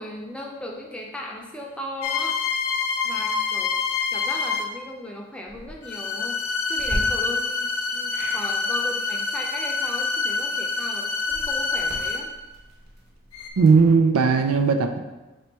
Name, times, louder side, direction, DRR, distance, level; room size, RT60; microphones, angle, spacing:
voice 1, 0.0-2.4 3.0-3.8 4.1-6.4 6.7-12.3, left 1 dB, 5° left, -1 dB, 0.3 m, -37 dB
sound 1, 2.0-4.8 5.8-12.4 13.3-13.5, left 4 dB, 80° left, 0.4 m, -26 dB
sound 2, 5.4-5.8 6.8-7.0 8.1-8.4 11.2-14.0, equal, 45° right, 0.8 m, -38 dB
voice 2, 13.6-15.0, right 5 dB, 85° right, 6 dB, 0.4 m, -17 dB
3.1 x 2.9 x 4.3 m, 1.1 s
head